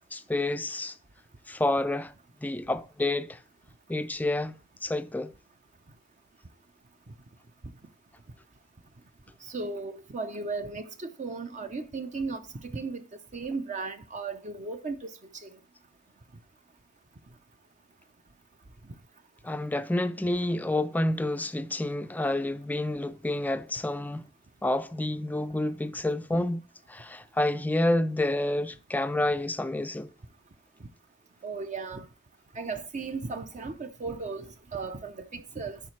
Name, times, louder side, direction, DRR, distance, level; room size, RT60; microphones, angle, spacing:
voice 1, 0.1-0.9 1.5-2.1 2.4-3.4 3.9-5.3 19.4-24.3 24.6-26.6 26.9-30.1, left 1 dB, 10° left, 0.4 m, -29 dB
voice 2, 9.5-13.1 13.3-15.1 15.4-15.5 26.3-26.4 31.4-32.1 32.5-35.8, right 4 dB, 35° right, 0.6 m, -36 dB
11.5 x 4.9 x 3.2 m
head